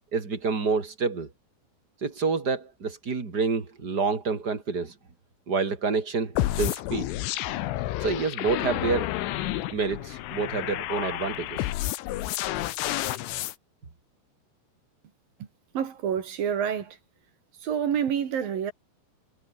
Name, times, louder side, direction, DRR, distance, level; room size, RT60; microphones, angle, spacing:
voice 1, 0.1-1.3 2.0-4.9 5.5-7.1 8.0-9.1 9.7-11.7, right 4 dB, 25° right, 3.0 m, -28 dB
sound 1, 6.4-13.5, left 15 dB, 85° left, 3.8 m, -30 dB
voice 2, 15.7-17.0 17.6-18.7, right 8 dB, 55° right, 3.6 m, -28 dB
omnidirectional pair, 5.5 m